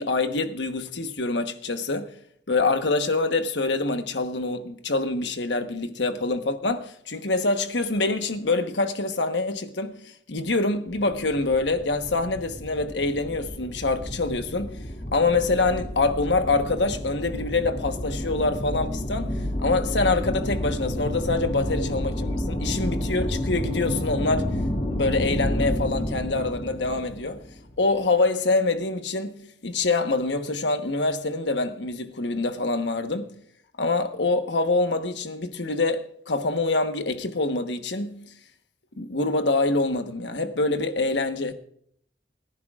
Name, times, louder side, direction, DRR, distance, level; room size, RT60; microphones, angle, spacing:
voice 1, 0.0-2.2 2.5-14.9 15.1-24.5 24.9-27.4 27.8-33.3 33.8-38.3 39.0-41.5, left 3 dB, 80° left, 1.1 m, -25 dB
sound 1, 10.9-27.9, left 1 dB, 40° left, 2.3 m, -30 dB
29.5 x 10.5 x 2.4 m
head